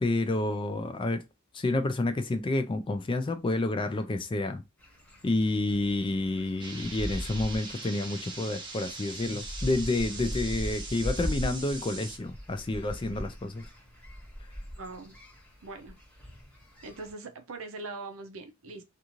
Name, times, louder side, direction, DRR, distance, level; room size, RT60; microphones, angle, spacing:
voice 1, 0.0-1.2 1.5-4.6 5.2-13.7, left 2 dB, 25° left, 0.3 m, -29 dB
sound 1, 4.8-17.1, equal, 5° left, 0.9 m, -40 dB
sound 2, 6.6-12.2, right 3 dB, 20° right, 0.6 m, -42 dB
voice 2, 14.8-15.2 15.6-16.0 16.8-18.8, right 3 dB, 75° right, 0.6 m, -41 dB
2.5 x 2.5 x 2.9 m
head